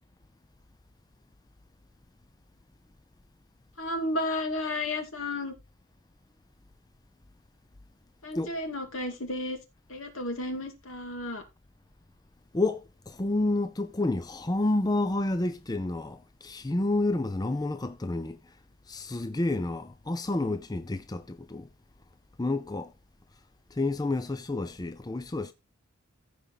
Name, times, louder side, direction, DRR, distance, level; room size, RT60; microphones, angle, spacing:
voice 1, 3.8-5.5 8.2-9.6 9.9-11.4, left 1 dB, 70° left, 2.3 m, -32 dB
voice 2, 12.5-18.4 18.9-21.7 22.4-22.9 23.8-25.5, left 2 dB, 20° left, 0.5 m, -29 dB
15.0 x 5.0 x 4.0 m
head